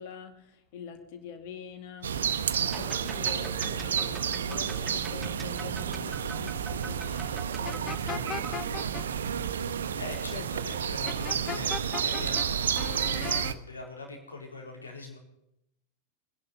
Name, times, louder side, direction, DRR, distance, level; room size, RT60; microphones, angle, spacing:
voice 1, 0.0-2.2 2.5-8.9 10.3-10.4, left 6 dB, 50° left, 7 dB, 2.6 m, -44 dB
sound 1, 2.0-13.5, right 8 dB, 65° right, 0.8 m, -31 dB
sound 2, 2.6-8.6, right 6 dB, 15° right, 0.5 m, -44 dB
sound 3, 7.6-9.0 11.1-12.5 12.8-13.5, left 8 dB, 25° left, 0.8 m, -37 dB
voice 2, 9.9-15.2, left 3 dB, 75° left, 1 dB, 4.3 m, -42 dB
23.0 x 11.0 x 5.5 m, 0.85 s
figure-of-eight pair, 90°, 0 cm